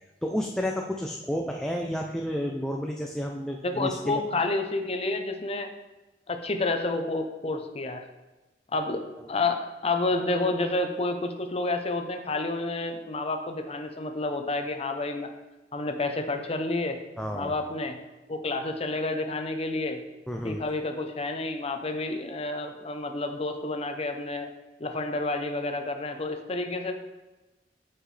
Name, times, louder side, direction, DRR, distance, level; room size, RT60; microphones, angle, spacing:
voice 1, 0.2-4.2 9.2-9.3 17.2-17.6 20.3-20.6, equal, 5° left, 1 dB, 0.4 m, -31 dB
voice 2, 3.6-5.7 6.3-8.0 8.7-9.0 9.3-15.3 15.7-17.0 17.3-18.0 18.3-20.0 20.4-24.5 24.8-26.9, left 2 dB, 35° left, 5 dB, 0.7 m, -29 dB
8.1 x 5.8 x 3.3 m, 1.1 s
head